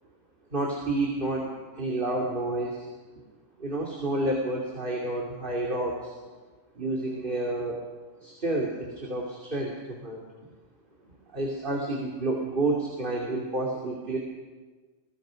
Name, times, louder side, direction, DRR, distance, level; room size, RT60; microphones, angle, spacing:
voice 1, 0.5-2.9 3.6-6.1 6.7-7.8 8.2-10.2 11.3-14.2, right 2 dB, 40° right, -2 dB, 3.1 m, -30 dB
29.5 x 21.5 x 5.2 m, 1.4 s
omnidirectional pair, 1.3 m